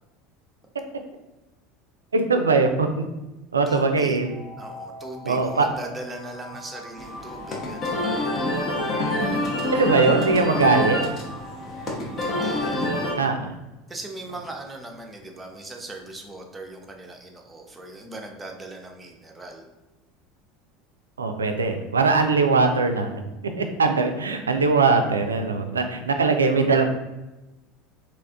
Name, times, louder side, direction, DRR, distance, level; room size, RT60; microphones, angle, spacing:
voice 1, 2.1-3.0 3.5-4.3 5.2-5.7 9.7-11.0 13.2-13.5 21.2-23.2 23.6-26.8, right 4 dB, 85° right, 6 dB, 0.3 m, -21 dB
voice 2, 3.7-8.1 12.2-12.9 13.9-19.6, right 2 dB, 15° right, 2 dB, 0.7 m, -39 dB
sound 1, 4.3-12.7, left 3 dB, 75° left, 1.4 m, -41 dB
sound 2, 7.0-13.1, left 1 dB, 35° left, 0.9 m, -26 dB
3.5 x 2.5 x 3.4 m, 1.0 s
figure-of-eight pair, 75°, 0 cm